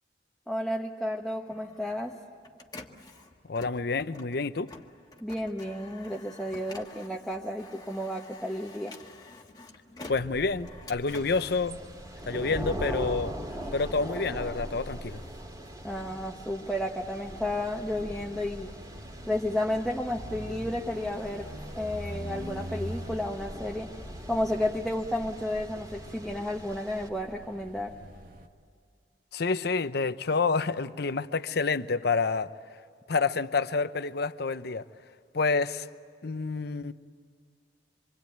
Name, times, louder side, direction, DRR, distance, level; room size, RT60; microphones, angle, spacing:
voice 1, 0.5-2.1 5.2-8.9 15.8-18.7 19.3-21.5 21.7-23.9 24.3-28.0, left 1 dB, ahead, -1 dB, 1.3 m, -32 dB
Printer, 1.1-12.5 13.0-14.8, left 3 dB, 25° left, 1.7 m, -49 dB
voice 2, 3.5-4.7 10.1-11.8 12.3-13.3 13.7-15.2 29.3-32.5 33.1-34.8 35.3-35.9 36.2-36.9, left 4 dB, 65° left, 13 dB, 0.8 m, -28 dB
sound 1, 10.1-28.5, equal, 55° right, 1.6 m, -44 dB
Thunder / Rain, 11.1-27.1, right 1 dB, 20° right, 2.4 m, -42 dB
26.0 x 24.5 x 9.2 m, 2.2 s
head